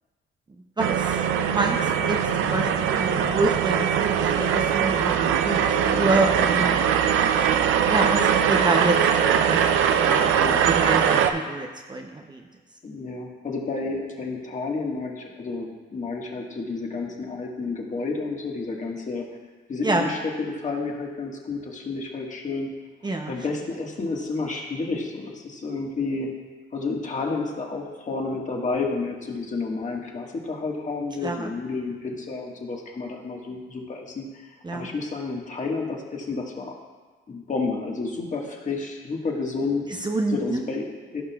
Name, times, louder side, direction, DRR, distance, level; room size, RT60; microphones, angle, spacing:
voice 1, 0.8-6.8 7.9-9.7 10.0-12.4 19.8-20.0 23.0-23.3 31.2-31.5 34.6-34.9 40.0-40.6, right 2 dB, 20° right, 2 dB, 0.7 m, -27 dB
sound 1, 0.8-11.3, right 8 dB, 85° right, 0.5 m, -21 dB
voice 2, 12.8-19.2 19.7-22.7 23.2-26.3 26.7-34.3 34.7-36.7 37.3-39.9 40.3-41.2, left 3 dB, 40° left, 0 dB, 1.5 m, -30 dB
16.0 x 5.4 x 2.3 m, 1.3 s
cardioid pair, 90°, 20 cm